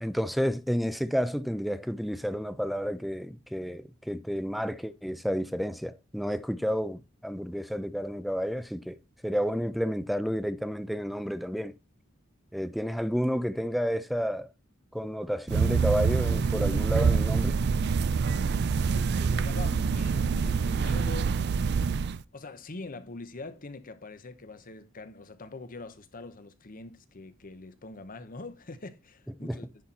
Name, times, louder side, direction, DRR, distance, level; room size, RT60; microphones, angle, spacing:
voice 1, 0.0-9.0 9.2-11.7 12.5-14.5 14.9-17.6 29.4-29.6, equal, ahead, 0.5 m, -30 dB
sound 1, 15.5-22.2, right 5 dB, 55° right, 0.4 m, -26 dB
voice 2, 18.8-21.4 22.3-29.7, left 3 dB, 45° left, 0.9 m, -43 dB
10.0 x 4.2 x 4.2 m
head